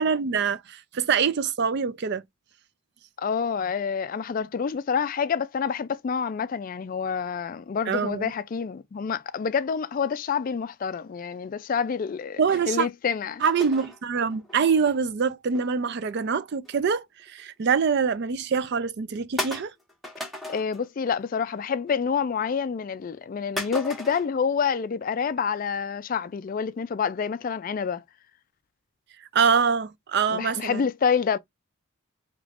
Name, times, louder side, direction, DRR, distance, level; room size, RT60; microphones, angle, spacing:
voice 1, 0.0-2.2 7.9-8.3 12.4-12.9 13.4-19.7 29.3-30.8, right 6 dB, 50° right, 0.4 m, -25 dB
voice 2, 3.2-12.4 12.7-13.4 20.5-28.0 30.3-31.4, left 6 dB, 40° left, 0.3 m, -27 dB
sound 1, 13.4-15.0 15.5-16.8 17.2-17.5 18.0-18.1 18.6-18.7 19.4-20.9 21.2-21.6 21.9-22.5 23.6-24.3, left 1 dB, ahead, 1.1 m, -36 dB
4.9 x 3.0 x 2.4 m
head